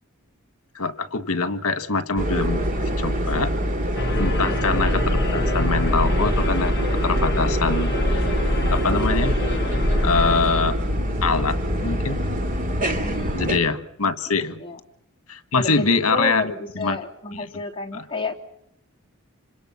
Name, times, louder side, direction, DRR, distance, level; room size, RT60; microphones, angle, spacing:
voice 1, 0.8-2.6 3.0-3.5 4.2-8.3 8.7-9.4 10.0-10.8 11.2-12.2 13.3-14.6 15.3-16.4 16.8-17.0 17.9-18.0, left 4 dB, 75° left, 11 dB, 1.7 m, -24 dB
sound 1, 2.2-13.6, equal, 40° right, 2.8 m, -24 dB
sound 2, 4.0-10.4, left 2 dB, 50° left, 1.0 m, -26 dB
voice 2, 4.2-4.8 13.0-13.5 14.6-14.8 15.5-18.3, left 2 dB, 25° left, 0 dB, 3.0 m, -31 dB
27.0 x 26.0 x 5.9 m, 0.76 s
head